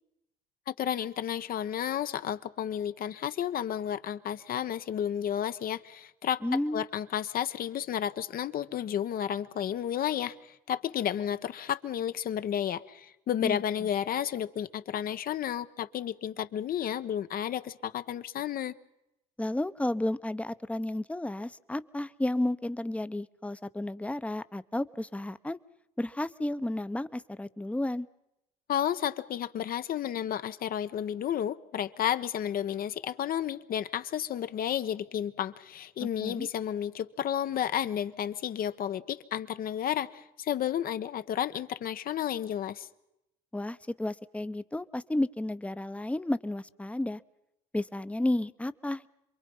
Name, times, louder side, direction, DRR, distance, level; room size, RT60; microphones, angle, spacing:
voice 1, 0.7-6.4 6.7-18.7 28.7-42.9, left 10 dB, 55° left, 12 dB, 1.2 m, -32 dB
voice 2, 6.4-6.9 13.4-13.6 19.4-25.6 26.0-28.1 36.0-36.5 43.5-47.2 47.7-49.1, left 1 dB, 5° left, 15 dB, 0.9 m, -32 dB
27.5 x 23.0 x 5.6 m, 0.86 s
supercardioid pair, 75°, 17 cm